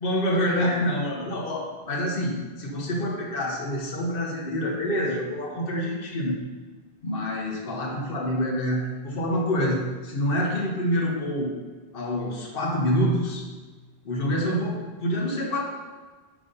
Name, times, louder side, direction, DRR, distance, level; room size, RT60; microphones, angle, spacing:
voice 1, 0.0-6.3 7.0-11.5 11.9-13.4 14.0-15.6, equal, 60° left, -1 dB, 1.4 m, -26 dB
9.8 x 4.1 x 5.2 m, 1.4 s
omnidirectional pair, 1.1 m